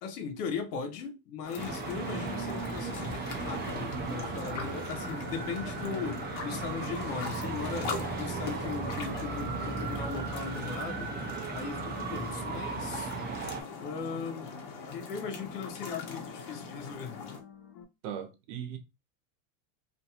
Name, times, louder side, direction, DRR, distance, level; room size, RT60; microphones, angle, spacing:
voice 1, 0.0-11.1 11.5-13.2 13.8-17.2, left 6 dB, 85° left, 0.9 m, -38 dB
sound 1, 1.4-17.4, left 5 dB, 55° left, 1.0 m, -42 dB
Traffic noise roadway noise, 1.6-13.6, right 4 dB, 25° right, 0.5 m, -36 dB
sound 2, 1.9-17.8, left 6 dB, 35° left, 0.5 m, -52 dB
voice 2, 18.0-18.8, right 9 dB, 70° right, 0.9 m, -38 dB
2.7 x 2.3 x 2.7 m
supercardioid pair, 110°, 46 cm